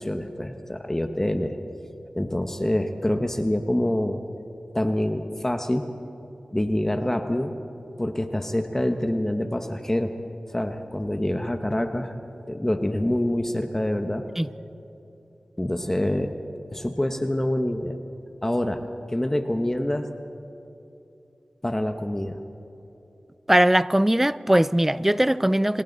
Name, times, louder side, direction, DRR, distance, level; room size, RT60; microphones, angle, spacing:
voice 1, 0.0-1.6 2.1-4.2 4.7-5.9 6.5-7.5 8.0-10.2 10.5-12.1 12.5-14.2 15.6-16.3 16.7-18.0 18.4-20.1 21.6-22.4, left 1 dB, 15° left, 1.1 m, -26 dB
voice 2, 23.5-25.8, right 1 dB, 10° right, 0.5 m, -20 dB
28.5 x 26.5 x 4.1 m
wide cardioid pair, 65°, 2 cm